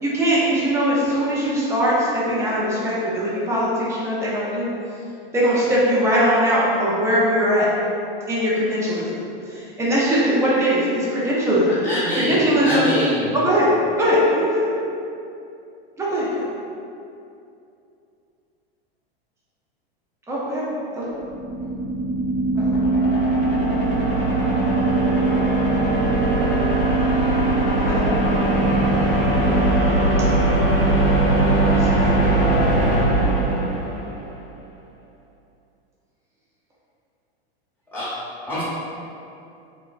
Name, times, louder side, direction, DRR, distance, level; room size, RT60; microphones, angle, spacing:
voice 1, 0.0-4.7 5.3-7.7 8.3-9.2 9.5-11.8 12.1-12.9 13.3-13.7 14.0-14.7 16.0-16.4 20.3-20.6 21.0-21.1 22.6-22.8 27.9-28.1 31.5-32.1, equal, 10° right, -7 dB, 0.5 m, -21 dB
voice 2, 11.7-13.3 37.9-38.1 38.4-38.6, equal, 5° left, -11 dB, 1.0 m, -24 dB
sound 1, 21.1-34.3, right 2 dB, 35° left, 0.7 m, -19 dB
3.2 x 2.1 x 2.4 m, 2.6 s
supercardioid pair, 130°, 30 cm